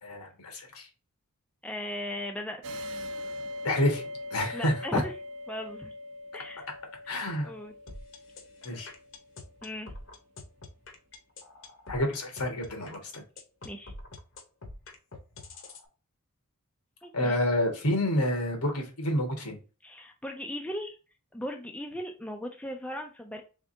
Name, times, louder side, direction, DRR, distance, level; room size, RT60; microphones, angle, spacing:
voice 1, 0.0-0.9 3.6-4.0 4.3-5.0 7.1-7.5 8.6-8.9 11.9-13.2 17.1-19.6, left 1 dB, 80° left, 3 dB, 1.5 m, -29 dB
voice 2, 1.6-2.8 4.5-5.1 5.5-5.9 6.3-6.7 7.4-7.7 9.6-9.9 13.6-13.9 17.0-17.4 19.8-21.0 21.3-23.4, left 1 dB, 5° left, 3 dB, 0.4 m, -37 dB
sound 1, 2.6-9.8, left 1 dB, 55° right, 0.7 m, -41 dB
sound 2, 7.9-15.8, left 2 dB, 60° left, 1.0 m, -45 dB
3.6 x 3.5 x 2.6 m, 0.33 s
head